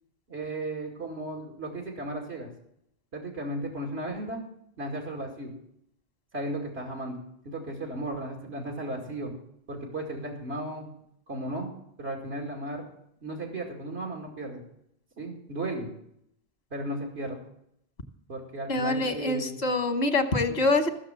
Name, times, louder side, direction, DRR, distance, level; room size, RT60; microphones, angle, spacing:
voice 1, 0.3-2.5 3.1-4.4 4.8-5.5 6.3-7.2 7.4-9.3 9.7-10.9 11.3-11.7 12.0-12.9 13.2-14.6 15.2-15.9 16.7-17.4 18.3-19.6 20.4-20.6, right 1 dB, 90° right, 0 dB, 2.7 m, -35 dB
voice 2, 18.7-20.9, left 2 dB, 80° left, 7 dB, 1.6 m, -25 dB
15.0 x 6.6 x 7.6 m, 0.73 s
omnidirectional pair, 1.1 m